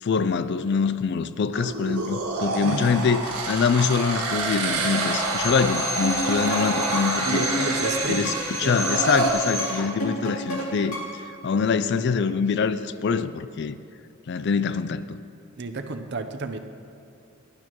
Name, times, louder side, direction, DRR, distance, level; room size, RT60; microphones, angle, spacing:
voice 1, 0.0-7.5 8.1-8.3 8.6-11.0 11.4-13.8 14.3-15.2, left 5 dB, 50° left, 13 dB, 0.4 m, -24 dB
sound 1, 1.5-9.3, right 3 dB, 85° right, 1.6 m, -28 dB
voice 2, 2.6-3.1 6.4-6.7 7.2-8.8 15.6-16.6, right 3 dB, 50° right, 7 dB, 0.7 m, -32 dB
Drill, 4.7-10.0, left 1 dB, 15° left, 1.2 m, -31 dB
sound 2, 6.0-11.3, right 1 dB, 70° left, 2.6 m, -31 dB
18.0 x 11.5 x 3.0 m, 2.6 s
head